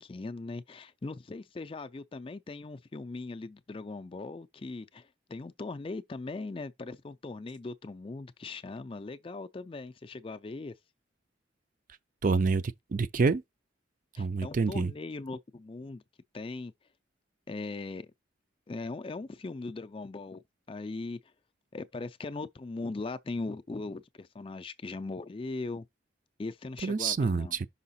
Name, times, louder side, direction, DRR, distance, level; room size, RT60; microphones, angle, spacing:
voice 1, 0.0-10.7 14.2-16.0 16.3-16.7 17.5-18.1 18.7-21.2 21.7-25.8 26.4-27.6, left 3 dB, 30° left, 0.4 m, -39 dB
voice 2, 12.2-13.4 14.2-14.9 26.8-27.7, right 4 dB, 45° right, 0.4 m, -27 dB
5.6 x 4.8 x 4.1 m
head